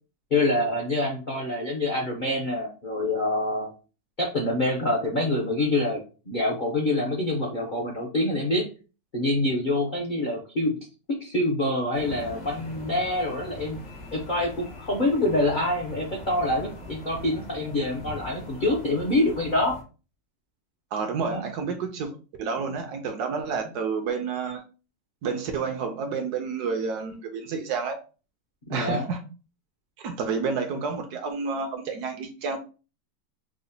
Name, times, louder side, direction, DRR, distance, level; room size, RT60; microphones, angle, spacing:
voice 1, 0.3-3.7 4.2-8.6 9.1-10.8 11.1-13.8 14.1-19.8 21.2-21.5 28.7-29.0, left 1 dB, 70° left, -1 dB, 0.4 m, -26 dB
sound 1, 11.9-19.8, left 2 dB, 90° left, 2.1 m, -42 dB
voice 2, 20.9-22.1 22.4-24.6 25.2-28.0 28.7-29.2 30.0-32.6, right 5 dB, 70° right, 6 dB, 1.0 m, -29 dB
4.9 x 2.1 x 2.6 m, 0.34 s
omnidirectional pair, 2.0 m